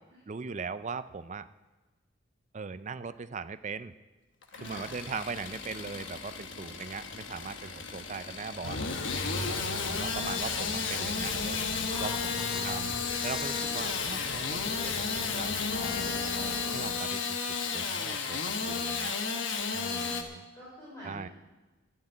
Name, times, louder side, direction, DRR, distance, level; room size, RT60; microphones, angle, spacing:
voice 1, 0.3-1.5 2.5-3.9 4.6-8.8 9.2-12.9 13.2-16.3 16.7-17.4 17.7-19.1 19.7-20.4 21.0-21.3, right 5 dB, 35° right, 13 dB, 0.4 m, -40 dB
Engine starting / Sawing, 4.4-20.2, left 5 dB, 65° left, 1.2 m, -33 dB
voice 2, 4.5-4.9 11.9-12.7 19.6-20.2 20.5-21.3, equal, 15° left, -9 dB, 4.3 m, -46 dB
sound 1, 8.6-17.0, left 2 dB, 80° left, 1.0 m, -40 dB
11.0 x 9.7 x 7.9 m, 1.2 s
head